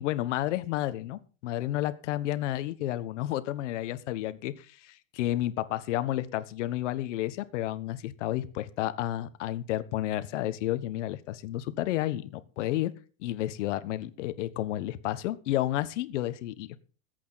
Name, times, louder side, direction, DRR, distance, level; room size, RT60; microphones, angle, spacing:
voice 1, 0.0-12.9 13.2-16.8, left 14 dB, 60° left, 12 dB, 1.3 m, -31 dB
20.5 x 8.5 x 4.1 m, 0.37 s
supercardioid pair, 160°, 40 cm